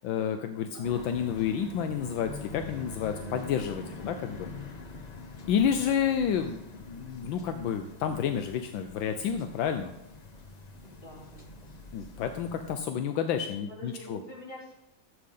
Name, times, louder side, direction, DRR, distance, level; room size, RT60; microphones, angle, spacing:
voice 1, 0.0-4.5 5.5-9.9 11.9-14.2, left 8 dB, 80° left, 7 dB, 1.4 m, -30 dB
voice 2, 0.7-1.1 3.8-4.6 10.8-11.6 13.7-14.7, left 1 dB, 25° left, -7 dB, 4.2 m, -47 dB
sound 1, 0.8-12.8, left 3 dB, 45° left, 0.5 m, -45 dB
13.0 x 8.0 x 3.8 m, 0.86 s
omnidirectional pair, 2.1 m